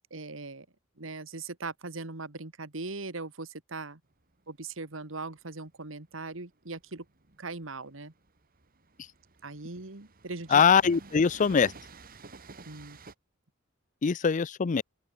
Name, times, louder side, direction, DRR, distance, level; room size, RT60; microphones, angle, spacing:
voice 1, 0.1-0.7 1.0-4.0 4.5-7.1 7.4-8.1 9.4-10.6 12.7-13.0, right 3 dB, 75° right, 2.0 m, -40 dB
Train, 4.0-13.1, right 3 dB, 45° right, 2.0 m, -52 dB
voice 2, 10.5-11.7 14.0-14.8, left 6 dB, 40° left, 0.4 m, -22 dB
open air
head